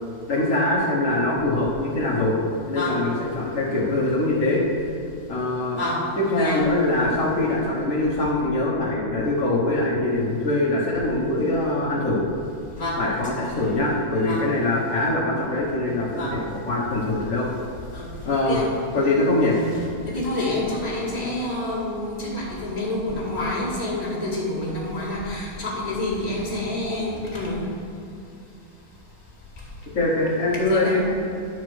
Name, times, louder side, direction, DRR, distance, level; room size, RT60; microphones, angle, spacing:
voice 1, 0.3-2.3 2.7-4.6 5.3-5.8 6.2-12.3 13.0-17.5 18.2-18.6 18.9-19.6 29.9-31.0, left 2 dB, 75° left, -7 dB, 0.7 m, -23 dB
voice 2, 6.2-6.6 12.8-13.0 14.2-14.4 16.1-16.4 17.9-18.1 18.5-18.7 19.7-27.7 30.5-31.0, left 1 dB, 15° left, -6 dB, 1.5 m, -28 dB
11.0 x 4.6 x 6.4 m, 2.6 s
omnidirectional pair, 3.5 m